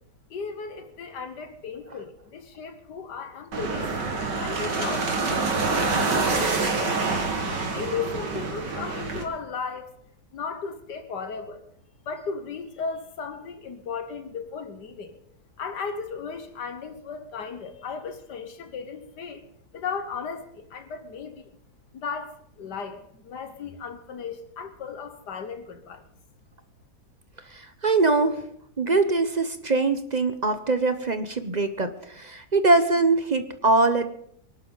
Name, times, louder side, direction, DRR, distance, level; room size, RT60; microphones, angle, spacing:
voice 1, 0.3-3.9 4.4-7.3 7.7-9.9 10.3-11.6 12.1-15.1 15.6-19.4 19.7-21.5 21.9-26.0, left 5 dB, 75° left, 9 dB, 1.8 m, -36 dB
sound 1, 3.5-9.2, right 3 dB, 85° right, 2.7 m, -26 dB
voice 2, 27.5-28.4 28.8-34.1, right 3 dB, 35° right, 9 dB, 0.7 m, -23 dB
24.5 x 11.5 x 4.0 m, 0.68 s
omnidirectional pair, 1.8 m